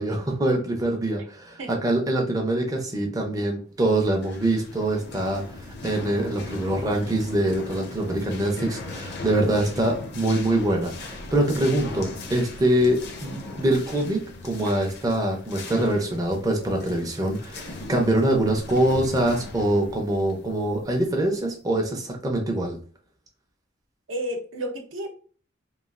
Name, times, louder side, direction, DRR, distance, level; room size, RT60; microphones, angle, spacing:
voice 1, 0.0-22.8, right 1 dB, 20° right, 1 dB, 0.4 m, -24 dB
sound 1, 4.0-21.4, left 2 dB, 55° left, 0.5 m, -39 dB
voice 2, 24.1-25.1, right 1 dB, 75° right, 3 dB, 0.6 m, -31 dB
3.0 x 2.3 x 2.4 m, 0.41 s
head